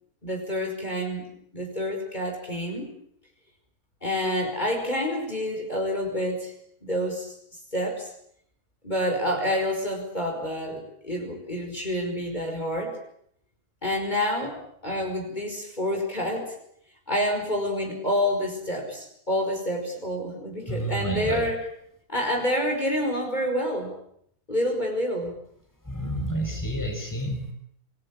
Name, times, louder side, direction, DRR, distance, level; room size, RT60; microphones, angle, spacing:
voice 1, 0.2-1.3 1.5-2.9 4.0-6.5 6.8-7.4 7.7-8.1 8.8-13.0 13.8-16.5 17.1-21.6 22.1-23.9 24.5-25.4, equal, 30° left, 1 dB, 5.4 m, -28 dB
voice 2, 20.7-21.4 25.8-27.5, right 1 dB, 10° left, 3 dB, 5.5 m, -29 dB
27.5 x 21.0 x 8.7 m, 0.71 s
omnidirectional pair, 1.5 m